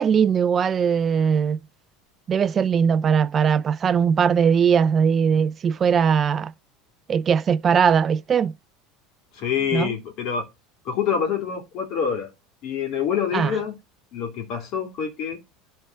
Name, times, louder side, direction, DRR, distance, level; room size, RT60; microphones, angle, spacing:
voice 1, 0.0-1.6 2.3-6.5 7.1-8.5 9.7-9.9 13.3-13.5, right 7 dB, 30° right, 0.4 m, -20 dB
voice 2, 9.3-10.5 10.8-12.3 12.6-13.8 14.1-15.4, left 7 dB, 55° left, 3.0 m, -26 dB
11.5 x 4.4 x 4.6 m
supercardioid pair, 120°, 0 cm